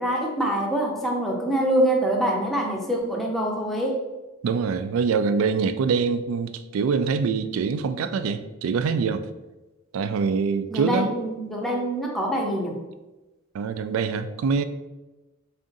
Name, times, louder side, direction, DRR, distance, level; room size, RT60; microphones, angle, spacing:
voice 1, 0.0-4.0 10.7-12.8, right 1 dB, ahead, -2 dB, 0.6 m, -25 dB
voice 2, 4.4-9.2 9.9-11.1 13.5-14.6, right 5 dB, 75° right, 12 dB, 0.3 m, -24 dB
3.6 x 2.5 x 3.8 m, 1.1 s
head